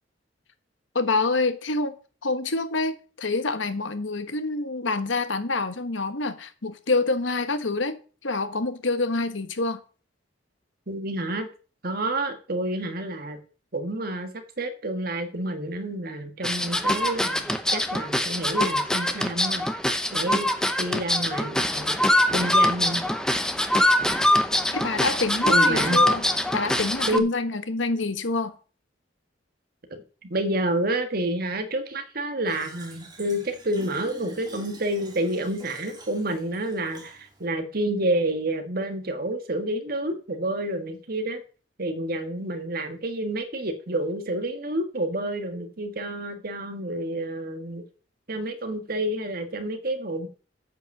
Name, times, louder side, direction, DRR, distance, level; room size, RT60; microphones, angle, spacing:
voice 1, 0.9-2.0 2.2-9.8 24.7-26.2 26.5-28.6, left 3 dB, 85° left, 1.2 m, -27 dB
voice 2, 10.9-11.5 11.8-13.4 13.7-14.3 14.6-17.4 17.7-19.7 20.1-20.5 20.8-23.1 25.5-26.0 27.1-27.3 29.9-30.0 30.3-41.4 41.8-47.8 48.3-50.3, right 1 dB, 55° right, 1.6 m, -29 dB
sound 1, 16.4-27.2, left 1 dB, 5° left, 0.8 m, -23 dB
Fill (with liquid), 32.5-37.5, right 2 dB, 25° right, 1.8 m, -47 dB
8.9 x 5.4 x 7.2 m
head